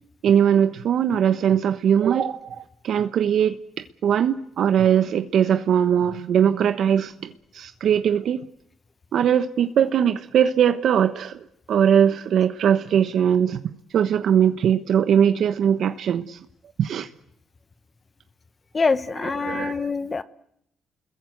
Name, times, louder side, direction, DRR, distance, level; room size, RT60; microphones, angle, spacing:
voice 1, 0.2-3.6 4.0-8.4 9.1-11.3 11.7-13.6 13.9-16.4 16.8-17.1 19.4-19.8, right 8 dB, 70° right, 9 dB, 1.1 m, -20 dB
voice 2, 18.7-20.2, left 4 dB, 30° left, 13 dB, 1.1 m, -24 dB
30.0 x 21.5 x 8.0 m, 0.75 s
cardioid pair, 90°, 0 cm